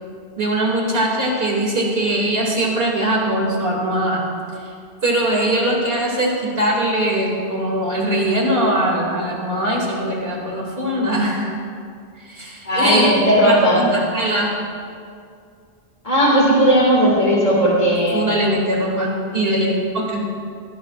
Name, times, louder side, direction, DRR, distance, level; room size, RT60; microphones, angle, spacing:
voice 1, 0.4-4.2 4.6-4.7 5.0-11.5 12.2-13.1 13.4-14.5 18.1-20.2, right 1 dB, 70° right, -2 dB, 2.8 m, -21 dB
voice 2, 12.7-13.9 16.0-18.4, equal, 40° left, -6 dB, 2.3 m, -16 dB
19.0 x 15.5 x 2.5 m, 2.3 s
omnidirectional pair, 1.0 m